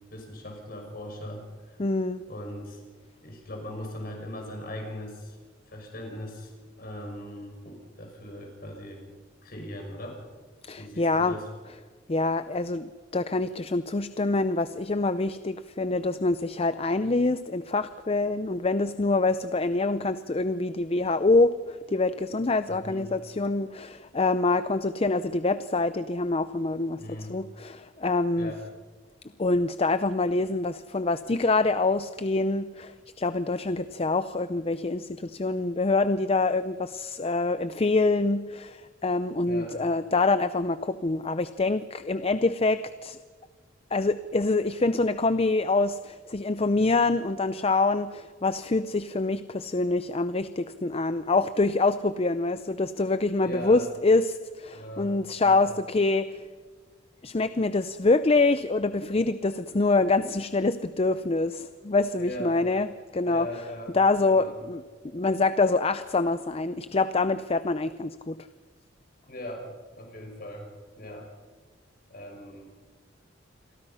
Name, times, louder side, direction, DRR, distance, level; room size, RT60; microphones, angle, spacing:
voice 1, 0.1-1.8 2.3-2.8 3.2-5.4 5.7-9.0 9.4-10.2 10.8-11.5 22.7-23.1 27.0-27.4 28.4-28.6 39.4-39.8 53.4-53.8 54.7-55.1 55.4-55.7 62.2-62.6 63.2-63.9 64.3-64.6 69.3-70.7 71.0-71.3 72.1-72.7, left 1 dB, 50° left, 2 dB, 6.0 m, -39 dB
voice 2, 1.8-2.2 10.6-11.4 12.1-27.0 27.3-28.5 29.4-43.2 43.9-56.4 57.2-63.5 63.9-64.8 65.1-68.4, left 3 dB, 30° left, 13 dB, 0.6 m, -25 dB
29.0 x 23.0 x 5.7 m, 1.5 s
head